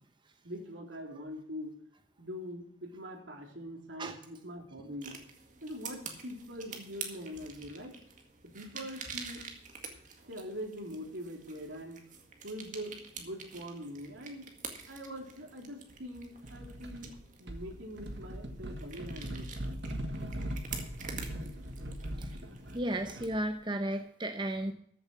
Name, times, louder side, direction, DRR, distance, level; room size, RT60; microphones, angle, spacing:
voice 1, 0.4-1.7 2.2-5.1 5.6-8.0 8.5-9.4 10.2-12.0 12.4-14.5 14.9-17.1 17.4-19.6, equal, 80° right, 1 dB, 3.6 m, -43 dB
sound 1, 5.0-22.8, right 5 dB, 40° right, 1.9 m, -47 dB
sound 2, 16.4-17.1 17.5-23.5, equal, 65° right, 1.7 m, -40 dB
voice 2, 22.7-24.7, right 1 dB, 25° right, 6 dB, 0.9 m, -34 dB
14.0 x 7.4 x 6.1 m, 0.65 s
head